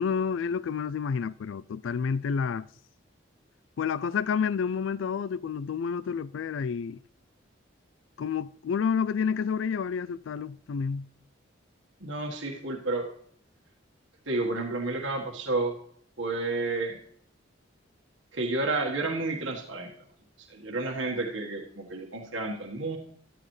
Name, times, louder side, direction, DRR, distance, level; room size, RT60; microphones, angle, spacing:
voice 1, 0.0-2.7 3.8-7.0 8.2-11.1, left 6 dB, 80° left, 0.4 m, -29 dB
voice 2, 12.0-13.1 14.3-15.7 16.2-17.0 18.3-19.9 20.4-23.0, right 2 dB, 80° right, 1.6 m, -31 dB
13.5 x 12.0 x 3.2 m
head